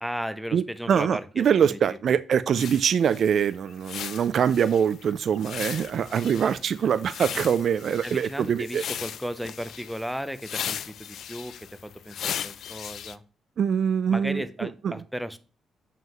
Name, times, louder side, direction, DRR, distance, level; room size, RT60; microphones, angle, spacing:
voice 1, 0.0-2.2 8.0-13.2 14.1-15.4, equal, ahead, 0.6 m, -35 dB
voice 2, 0.5-8.8 13.6-14.4 14.8-15.0, right 8 dB, 60° right, 0.3 m, -24 dB
sound 1, 2.6-13.2, left 9 dB, 70° left, 0.4 m, -37 dB
7.4 x 5.7 x 3.0 m
cardioid pair, 95°, 0 cm